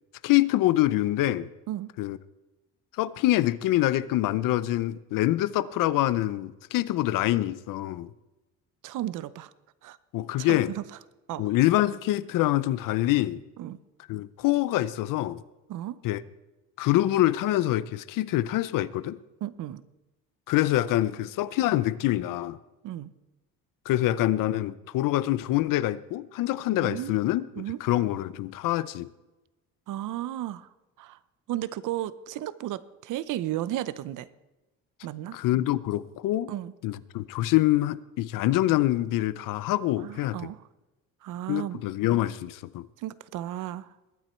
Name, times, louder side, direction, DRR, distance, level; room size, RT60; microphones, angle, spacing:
voice 1, 0.2-1.5 2.0-2.2 3.0-8.1 10.1-10.7 11.4-13.4 14.1-15.4 16.0-16.2 16.8-19.2 20.5-22.6 23.9-27.5 27.8-29.1 35.3-36.5 36.8-40.4 41.5-42.9, left 15 dB, 75° left, 17 dB, 0.7 m, -25 dB
voice 2, 8.8-9.5 9.8-10.0 10.4-10.8 11.3-11.5 13.6-13.8 15.7-16.0 19.4-19.8 22.8-23.1 26.8-27.1 27.6-27.8 29.9-30.7 31.0-31.2 31.5-34.3 35.0-35.4 36.5-36.7 40.0-40.6 41.2-41.8 43.0-43.9, right 13 dB, 65° right, 16 dB, 0.8 m, -34 dB
21.0 x 9.1 x 4.5 m, 1.1 s
cardioid pair, 130°, 33 cm